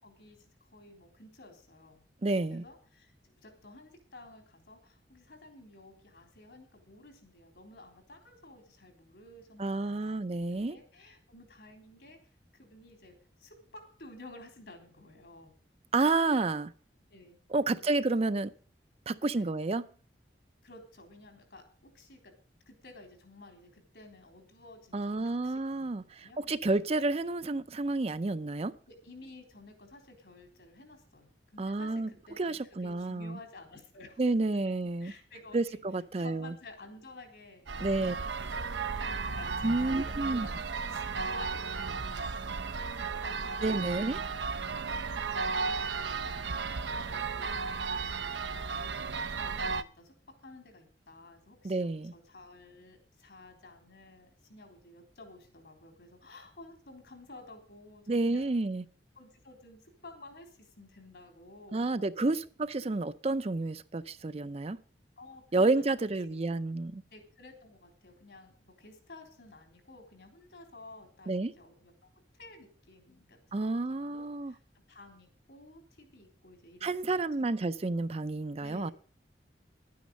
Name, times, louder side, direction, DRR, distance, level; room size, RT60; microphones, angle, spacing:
voice 1, 0.0-2.0 2.5-3.1 3.4-10.2 10.6-12.2 12.5-15.6 17.1-17.4 17.7-18.0 19.3-19.5 20.6-22.3 22.7-25.9 26.2-26.7 28.9-34.2 34.5-34.7 35.0-35.8 36.2-38.5 38.8-43.7 44.8-46.6 46.9-50.1 50.4-58.6 59.2-62.4 65.2-66.0 67.1-74.6 74.9-77.2 78.6-78.9, left 2 dB, 70° left, 3.8 m, -53 dB
voice 2, 2.2-2.6 9.6-10.8 15.9-16.7 17.5-18.5 19.1-19.8 24.9-28.7 31.6-32.1 32.4-33.4 34.2-35.1 35.5-36.5 37.8-38.1 39.6-40.5 43.6-44.2 51.6-52.1 58.1-58.8 61.7-64.8 65.5-67.0 71.3-71.5 73.5-74.5 76.8-78.9, right 2 dB, 35° right, 0.5 m, -30 dB
sound 1, 37.7-49.8, right 4 dB, 85° right, 0.7 m, -34 dB
11.5 x 9.4 x 6.5 m
head